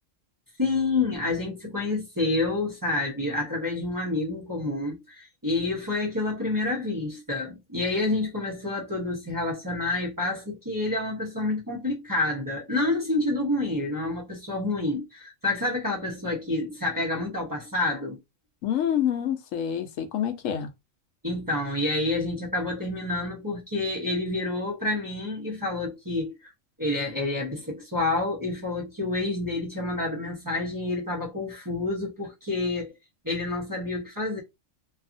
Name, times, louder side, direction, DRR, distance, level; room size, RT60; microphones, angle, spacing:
voice 1, 0.6-18.2 21.2-26.5 26.8-32.9 33.2-34.4, left 2 dB, 20° right, 0.7 m, -28 dB
voice 2, 18.6-20.7, left 9 dB, 80° left, 0.9 m, -27 dB
2.7 x 2.4 x 2.5 m
omnidirectional pair, 1.3 m